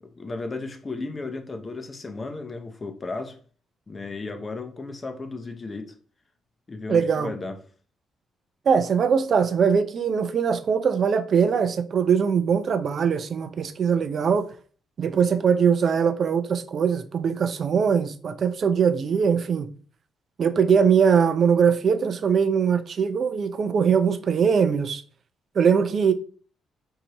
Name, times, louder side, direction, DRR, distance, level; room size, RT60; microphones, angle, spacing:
voice 1, 0.0-3.4 3.9-5.9 6.7-7.6, left 3 dB, 30° left, 0.7 m, -34 dB
voice 2, 6.9-7.3 8.7-14.5 15.0-19.7 20.4-25.0 25.6-26.1, right 6 dB, 50° right, 0.4 m, -21 dB
4.7 x 2.7 x 2.9 m
cardioid pair, 90°, 0 cm